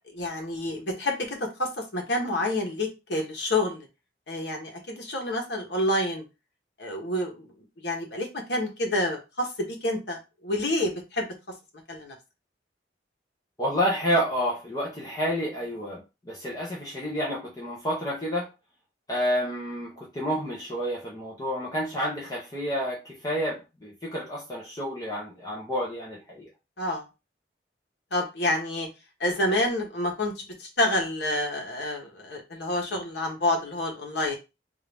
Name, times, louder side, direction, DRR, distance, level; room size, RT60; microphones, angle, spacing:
voice 1, 0.1-3.9 4.3-6.2 6.8-7.5 7.8-11.3 11.9-12.1 26.8-27.0 28.1-28.9 29.2-30.3 30.6-34.4, left 1 dB, 70° left, 1 dB, 1.2 m, -28 dB
voice 2, 13.6-18.5 19.1-26.5, equal, 20° left, -4 dB, 0.8 m, -29 dB
3.7 x 2.6 x 3.4 m, 0.27 s
head